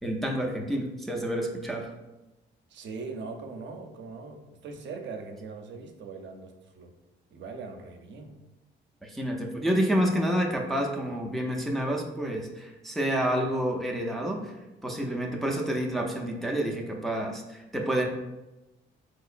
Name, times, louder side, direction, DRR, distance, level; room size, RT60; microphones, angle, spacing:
voice 1, 0.0-1.9 9.0-14.6 14.8-18.1, equal, ahead, 0 dB, 0.4 m, -29 dB
voice 2, 2.7-6.9 7.3-8.3, right 4 dB, 65° right, 3 dB, 0.5 m, -41 dB
3.5 x 2.9 x 2.4 m, 1.0 s
cardioid pair, 90°, 20 cm